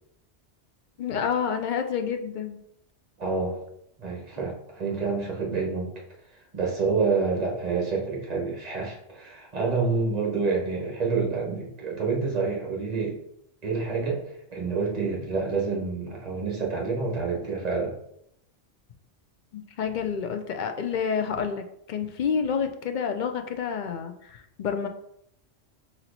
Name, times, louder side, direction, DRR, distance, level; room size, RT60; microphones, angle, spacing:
voice 1, 1.0-2.6 19.5-24.9, left 6 dB, 55° left, 6 dB, 0.5 m, -29 dB
voice 2, 3.2-3.6 4.0-5.9 6.5-13.2 13.6-14.2 14.5-17.9, right 4 dB, 35° right, -1 dB, 1.2 m, -28 dB
4.3 x 2.9 x 3.9 m, 0.74 s
omnidirectional pair, 1.1 m